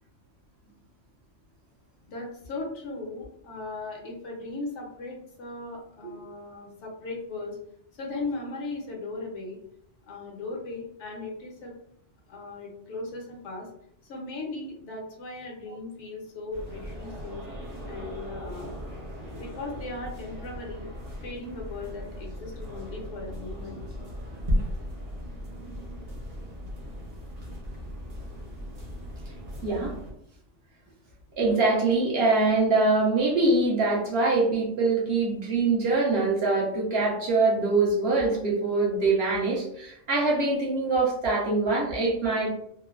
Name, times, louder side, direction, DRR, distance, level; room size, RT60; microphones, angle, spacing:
voice 1, 2.1-7.6 7.9-9.6 10.1-11.7 12.3-13.7 14.1-17.4 17.9-18.8 19.3-20.9 21.2-23.8, left 3 dB, 75° left, -1 dB, 1.0 m, -37 dB
sound 1, 16.5-30.1, equal, 40° right, 0.6 m, -36 dB
voice 2, 29.6-29.9 31.4-42.5, right 3 dB, 60° right, -3 dB, 0.9 m, -24 dB
3.0 x 2.1 x 2.3 m, 0.71 s
omnidirectional pair, 1.2 m